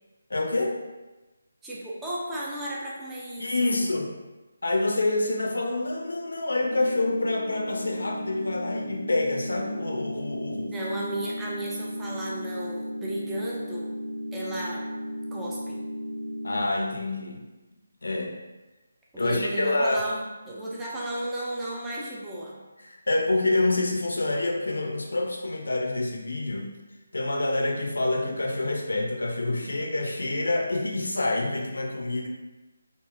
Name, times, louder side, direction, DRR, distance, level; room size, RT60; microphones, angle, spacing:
voice 1, 0.3-0.8 3.4-4.1 4.6-10.7 16.4-17.4 18.0-18.3 19.2-20.0 22.8-26.7 27.1-32.3, left 2 dB, 65° left, 0 dB, 0.5 m, -27 dB
voice 2, 1.6-4.0 10.7-13.9 14.3-14.8 15.3-15.8 19.1-22.6, right 1 dB, 10° right, -6 dB, 0.5 m, -34 dB
sound 1, 6.6-16.6, equal, 85° right, 0.6 m, -35 dB
3.7 x 2.0 x 2.4 m, 1.1 s
figure-of-eight pair, 150°, 0 cm